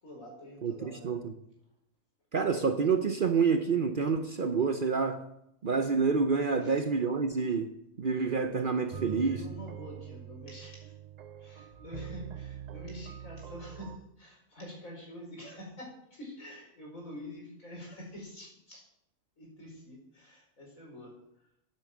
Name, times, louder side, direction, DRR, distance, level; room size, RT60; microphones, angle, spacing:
voice 1, 0.0-1.2 6.6-6.8 8.9-10.9 11.4-18.8 19.4-21.1, left 1 dB, 75° left, 5.1 m, -46 dB
voice 2, 0.6-1.2 2.3-5.2 5.6-7.7 8.0-9.4, right 5 dB, 45° right, 0.8 m, -28 dB
sound 1, 8.3-14.0, right 8 dB, 85° right, 0.3 m, -44 dB
9.3 x 8.9 x 7.4 m
omnidirectional pair, 1.4 m